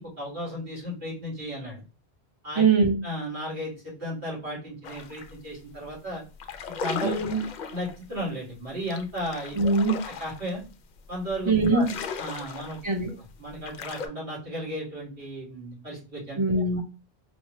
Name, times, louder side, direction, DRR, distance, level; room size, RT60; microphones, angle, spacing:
voice 1, 0.0-1.8 2.4-2.6 3.0-6.2 6.8-7.1 7.7-9.6 10.1-10.6 11.1-12.8 13.4-16.4, equal, 90° right, -7 dB, 2.7 m, -34 dB
voice 2, 2.6-3.0 7.0-7.4 9.6-10.0 11.5-11.9 12.8-13.1 16.4-16.8, right 3 dB, 30° right, 2 dB, 0.8 m, -22 dB
sound 1, 4.8-5.3 5.7-5.9 6.3-14.1, left 6 dB, 55° left, 0.5 m, -37 dB
4.8 x 2.1 x 3.1 m, 0.31 s
omnidirectional pair, 1.1 m